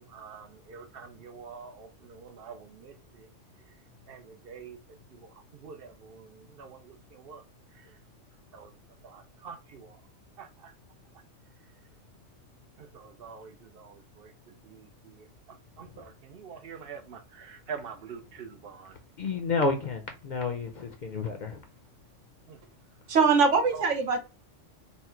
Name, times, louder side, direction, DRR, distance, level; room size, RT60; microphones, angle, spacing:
voice 1, 0.0-3.3 4.1-7.4 7.7-8.0 8.5-8.7 9.0-10.0 10.4-10.7 12.8-19.0 22.5-22.6 23.5-23.9, right 6 dB, 60° right, 0.7 m, -46 dB
voice 2, 19.2-21.6, left 3 dB, 50° left, 0.6 m, -30 dB
voice 3, 23.1-24.2, right 5 dB, 80° right, 1.2 m, -22 dB
4.2 x 2.1 x 4.3 m
omnidirectional pair, 1.2 m